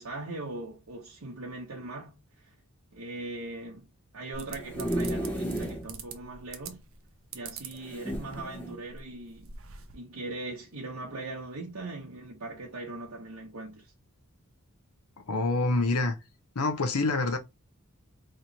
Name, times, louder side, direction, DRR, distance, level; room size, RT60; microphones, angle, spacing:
voice 1, 0.0-2.5 2.9-3.9 4.1-6.8 7.3-9.6 9.9-13.9, right 2 dB, 85° right, 1.0 m, -40 dB
sound 1, 4.3-5.9 6.3-6.4 6.6-6.7 7.8-8.8 9.4-9.6, right 1 dB, 5° left, 0.9 m, -33 dB
sound 2, 4.4-6.1 6.5-7.0 7.3-8.6 9.0-9.1 9.3-9.9, right 6 dB, 60° right, 0.7 m, -43 dB
voice 2, 15.3-16.2 16.6-17.4, left 3 dB, 85° left, 0.8 m, -26 dB
3.2 x 3.0 x 4.0 m
head